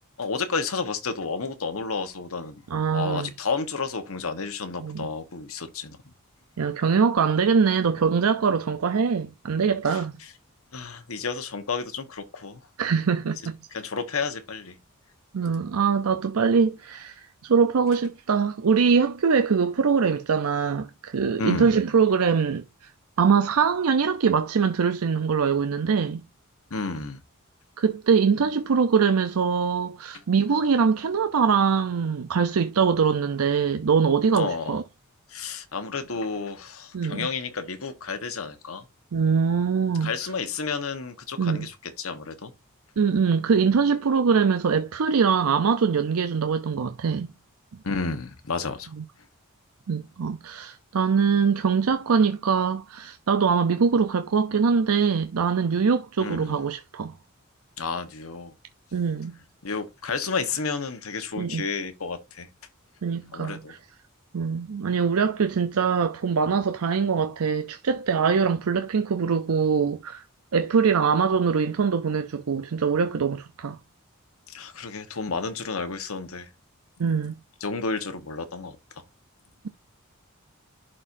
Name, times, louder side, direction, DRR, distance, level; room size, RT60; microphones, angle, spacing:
voice 1, 0.2-2.6 2.9-6.0 9.9-10.0 10.7-12.6 13.7-14.7 21.4-21.8 26.7-27.2 34.3-34.8 35.3-38.8 40.0-42.5 47.8-48.9 56.2-56.6 57.8-58.5 59.6-62.5 63.3-63.7 74.5-76.5 77.6-78.8, left 4 dB, 80° left, 1.2 m, -31 dB
voice 2, 2.7-3.3 4.8-5.1 6.6-10.1 12.8-13.5 15.3-22.6 23.2-26.2 27.8-34.8 36.9-37.3 39.1-40.1 41.4-41.7 43.0-47.3 49.9-57.1 58.9-59.3 61.4-61.6 63.0-63.8 64.3-70.2 70.5-73.8 77.0-77.4, right 6 dB, 90° right, 0.5 m, -23 dB
11.0 x 4.3 x 2.6 m
head